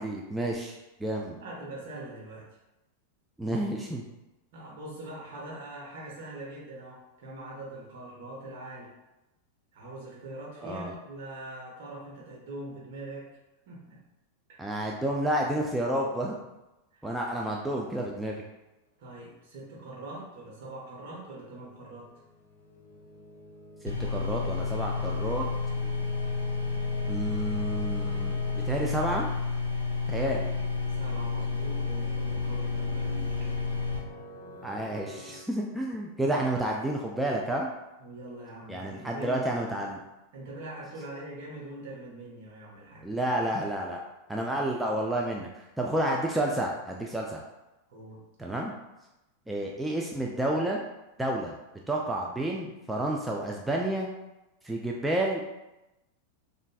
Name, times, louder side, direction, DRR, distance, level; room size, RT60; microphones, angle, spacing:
voice 1, 0.0-1.3 3.4-4.0 10.6-10.9 14.6-16.4 17.0-18.4 24.0-25.4 27.1-29.3 30.1-30.5 34.6-37.7 38.7-40.0 43.0-44.0 44.3-47.4 48.4-48.7 49.5-50.8 51.2-51.5 51.9-54.1 54.6-55.4, right 1 dB, 5° right, -1 dB, 0.4 m, -30 dB
voice 2, 1.3-2.6 4.5-8.9 9.7-13.3 13.7-14.0 14.5-14.7 16.9-17.1 19.0-22.1 30.9-33.5 38.0-39.7 40.3-43.1 47.9-48.2, right 1 dB, 50° right, -3 dB, 1.1 m, -43 dB
sound 1, 20.5-35.4, left 1 dB, 55° left, 0.7 m, -46 dB
sound 2, 23.9-34.0, left 4 dB, 85° right, 0.7 m, -30 dB
5.1 x 2.5 x 2.3 m, 0.98 s
figure-of-eight pair, 90°, 0 cm